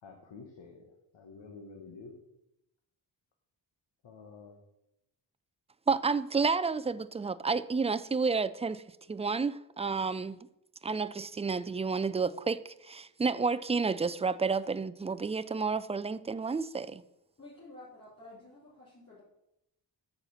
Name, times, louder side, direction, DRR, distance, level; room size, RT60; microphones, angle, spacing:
voice 1, 0.0-2.2 4.0-4.6, left 4 dB, 80° left, 1.5 m, -49 dB
voice 2, 5.9-8.8 9.1-10.5 10.8-17.0, right 4 dB, 15° right, 0.3 m, -30 dB
voice 3, 17.4-19.2, left 2 dB, 30° left, 3.6 m, -51 dB
8.9 x 5.8 x 7.0 m
wide cardioid pair, 115°, 43 cm